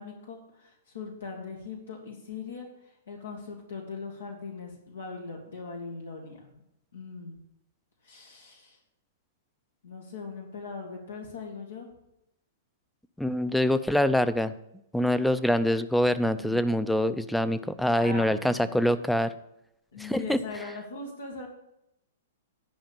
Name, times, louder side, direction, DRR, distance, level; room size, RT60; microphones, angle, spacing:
voice 1, 0.0-2.7 3.1-6.5 6.9-7.4 8.0-8.8 9.8-11.9 16.4-16.6 18.0-18.8 19.9-21.5, left 4 dB, 80° left, 1 dB, 1.9 m, -40 dB
voice 2, 13.2-14.5 14.9-19.3 20.0-20.4, left 1 dB, ahead, 13 dB, 0.5 m, -25 dB
10.5 x 5.0 x 6.9 m, 0.83 s
hypercardioid pair, 120°, 0 cm